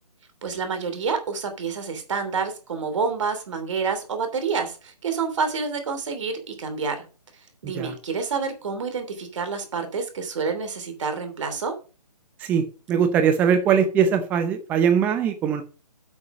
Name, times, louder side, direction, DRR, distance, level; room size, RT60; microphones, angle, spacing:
voice 1, 0.4-7.0 7.6-11.8, right 5 dB, 50° right, 7 dB, 3.0 m, -28 dB
voice 2, 12.4-15.6, right 7 dB, 10° right, 9 dB, 0.6 m, -21 dB
8.4 x 6.3 x 6.1 m, 0.35 s
figure-of-eight pair, 150°, 21 cm